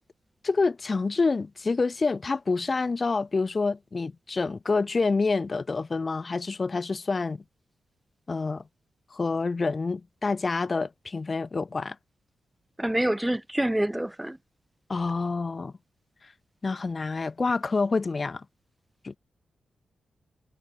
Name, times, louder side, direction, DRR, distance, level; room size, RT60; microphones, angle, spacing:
voice 1, 0.4-7.4 8.3-8.6 9.1-12.0 14.9-15.7 16.2-16.3 16.6-18.5 19.0-19.2, left 4 dB, 35° left, 0.8 m, -27 dB
voice 2, 12.8-14.4, right 1 dB, 10° right, 0.4 m, -26 dB
cardioid pair, 80°, 0 cm